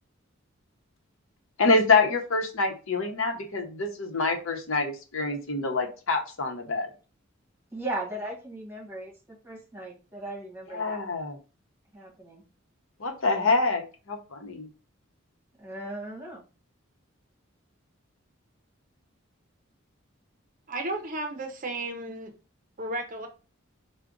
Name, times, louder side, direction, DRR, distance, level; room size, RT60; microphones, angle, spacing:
voice 1, 1.6-6.9 10.7-11.4 13.0-14.7, left 3 dB, 80° left, 0.8 m, -26 dB
voice 2, 7.7-11.0 11.9-12.4 15.6-16.4, right 2 dB, 10° right, 1.4 m, -37 dB
voice 3, 20.7-22.3 22.8-23.3, right 2 dB, 40° right, 0.6 m, -33 dB
4.7 x 2.2 x 3.7 m
head